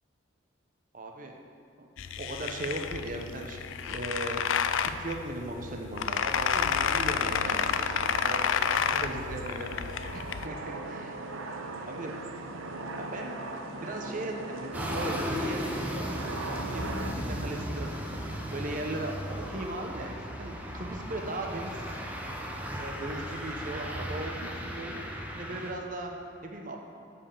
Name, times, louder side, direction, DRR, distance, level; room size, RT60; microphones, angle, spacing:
voice 1, 0.9-1.4 1.8-4.5 4.8-9.8 10.1-11.2 11.9-12.2 12.9-15.9 16.4-17.9 18.2-21.9 22.8-26.8, right 1 dB, 40° right, 2 dB, 0.8 m, -38 dB
sound 1, 2.0-10.5, left 7 dB, 75° left, 0.4 m, -30 dB
sound 2, 7.2-17.1, right 2 dB, 85° right, 0.7 m, -39 dB
sound 3, 14.7-25.7, equal, 10° right, 0.7 m, -36 dB
6.9 x 5.5 x 6.9 m, 2.7 s
head